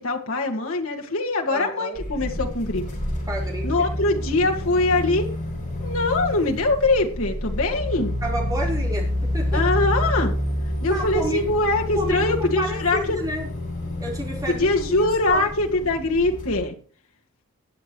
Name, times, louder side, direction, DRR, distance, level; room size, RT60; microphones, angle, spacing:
voice 1, 0.0-2.8 3.6-5.3 5.8-8.1 9.5-10.3 10.8-13.2 14.5-16.8, left 2 dB, 65° left, 1 dB, 2.0 m, -23 dB
voice 2, 1.5-2.0 3.3-3.9 8.2-9.1 9.3-9.6 10.8-11.5 11.9-13.5 14.0-15.4, equal, 15° right, -2 dB, 4.3 m, -30 dB
sound 1, 1.9-16.6, left 1 dB, 35° left, 7.4 m, -28 dB
21.0 x 7.9 x 3.1 m, 0.41 s
head